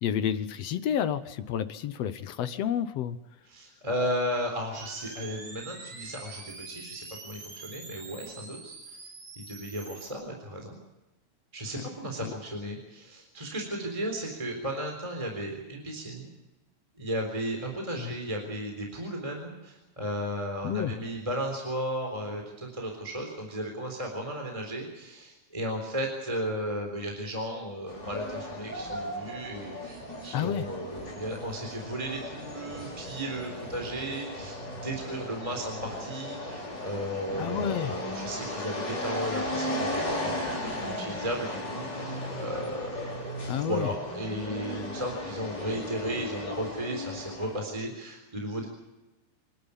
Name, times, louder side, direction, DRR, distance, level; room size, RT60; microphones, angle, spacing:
voice 1, 0.0-3.2 11.8-11.9 12.2-12.3 18.0-18.1 20.6-20.9 30.3-30.7 37.4-37.9 43.5-43.9, left 9 dB, 65° left, 12 dB, 1.8 m, -30 dB
voice 2, 3.4-9.0 9.4-10.8 11.5-16.3 17.0-48.7, equal, 10° right, 1 dB, 3.7 m, -35 dB
sound 1, 4.7-10.1, right 3 dB, 70° right, 5.6 m, -45 dB
sound 2, 27.9-47.6, left 1 dB, 35° left, 6.0 m, -36 dB
27.0 x 12.0 x 9.9 m, 1.0 s
omnidirectional pair, 3.5 m